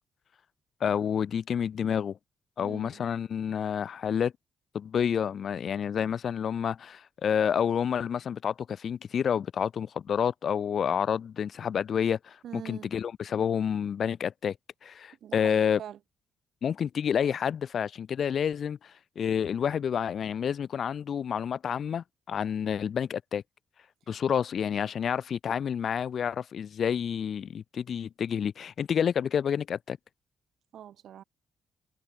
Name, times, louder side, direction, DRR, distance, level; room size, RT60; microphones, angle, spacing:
voice 1, 0.8-2.2 2.6-4.3 4.7-14.5 14.8-15.8 16.6-23.4 24.1-30.0, left 8 dB, 60° left, 2.5 m, -29 dB
voice 2, 2.6-3.0 12.4-12.9 15.2-16.0 30.7-31.2, right 10 dB, 75° right, 5.4 m, -43 dB
cardioid pair, 70°, 0 cm